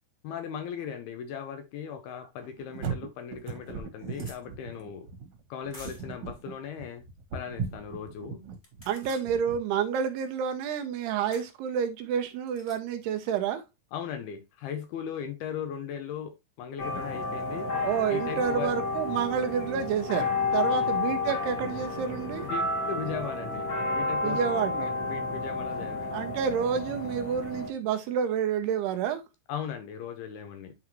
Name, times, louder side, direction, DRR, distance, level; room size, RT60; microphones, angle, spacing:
voice 1, 0.2-5.1 5.5-7.0 7.3-8.4 13.9-17.7 18.1-18.7 20.7-21.0 22.4-24.4 24.8-26.2 29.5-30.7, left 8 dB, 75° left, 2.4 m, -38 dB
sound 1, 2.4-9.6, right 6 dB, 55° right, 2.1 m, -38 dB
sound 2, 2.7-2.8 3.4-3.5 3.6-4.4 5.7-6.2 8.5-9.3 11.3-11.5 12.5-12.8, left 1 dB, 15° left, 1.4 m, -49 dB
voice 2, 8.9-13.6 17.8-22.5 24.2-24.9 26.1-29.2, right 8 dB, 80° right, 2.6 m, -29 dB
sound 3, 16.8-27.7, left 3 dB, 50° left, 1.4 m, -31 dB
10.5 x 3.9 x 2.9 m
omnidirectional pair, 5.0 m